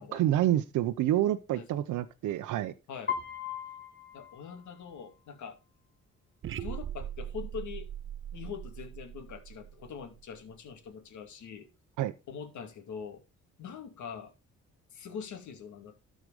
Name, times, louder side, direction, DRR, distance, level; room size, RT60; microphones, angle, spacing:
voice 1, 0.0-2.7 12.0-12.1, right 13 dB, 80° right, 0.7 m, -28 dB
Piano, 3.1-5.1, left 8 dB, 35° left, 1.7 m, -38 dB
voice 2, 4.1-5.6 6.6-7.9 8.3-11.7 12.3-13.2 13.6-14.3 14.9-16.0, left 6 dB, 70° left, 2.5 m, -43 dB
sound 1, 6.4-10.5, right 10 dB, 45° right, 0.5 m, -40 dB
13.0 x 5.2 x 5.0 m
cardioid pair, 90°, 30 cm